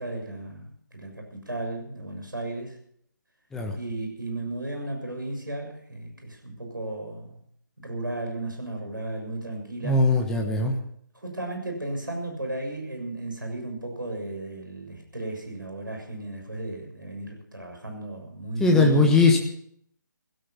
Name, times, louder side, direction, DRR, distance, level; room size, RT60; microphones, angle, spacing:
voice 1, 0.0-2.8 3.8-7.4 7.8-10.0 11.1-19.2, right 2 dB, 80° right, 2 dB, 6.8 m, -34 dB
voice 2, 9.8-10.7 18.6-19.4, left 3 dB, 5° left, 1 dB, 1.2 m, -20 dB
17.0 x 12.5 x 5.9 m, 0.66 s
figure-of-eight pair, 145°, 11 cm